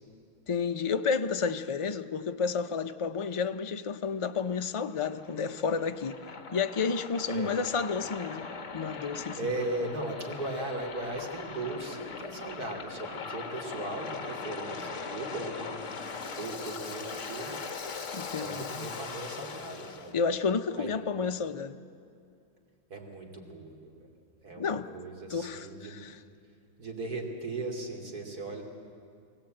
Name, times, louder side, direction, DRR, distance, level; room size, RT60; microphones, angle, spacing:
voice 1, 0.5-6.2 6.5-8.5 8.7-9.4 18.1-18.9 20.1-21.8 24.6-24.9 25.3-26.2, left 5 dB, 40° left, 7 dB, 0.5 m, -31 dB
Waves surf, 4.3-20.1, left 5 dB, 55° left, 1.6 m, -40 dB
voice 2, 9.4-16.0 16.4-17.6 18.3-20.2 20.8-20.9 22.9-24.1 24.4-26.1 26.8-28.6, right 2 dB, 85° right, 1 dB, 3.4 m, -37 dB
24.0 x 17.0 x 8.9 m, 2.5 s
omnidirectional pair, 1.6 m